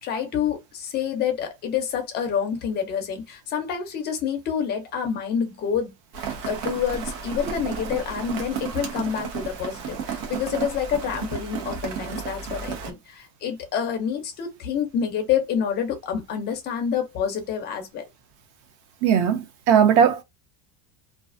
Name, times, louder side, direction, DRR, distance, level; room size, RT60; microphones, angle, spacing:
voice 1, 0.0-5.9 6.2-18.1, left 8 dB, 25° left, 0.4 m, -28 dB
Rain, 6.1-12.9, right 6 dB, 85° right, 0.9 m, -33 dB
voice 2, 19.0-20.2, right 8 dB, 45° right, 0.4 m, -18 dB
2.4 x 2.4 x 2.3 m
cardioid pair, 170°, 45 cm